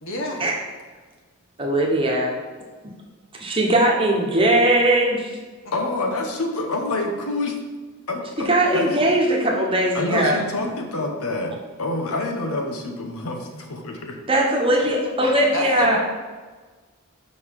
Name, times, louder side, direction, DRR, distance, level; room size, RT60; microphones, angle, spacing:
voice 1, 0.0-0.4 15.5-16.0, left 1 dB, 60° left, 0 dB, 1.4 m, -27 dB
voice 2, 1.6-2.4 3.3-5.3 8.4-10.4 14.3-16.0, right 1 dB, 25° right, -1 dB, 1.1 m, -19 dB
voice 3, 5.7-7.6 8.1-8.9 9.9-14.2, left 2 dB, 85° left, 3 dB, 1.0 m, -27 dB
6.5 x 5.4 x 4.7 m, 1.4 s
head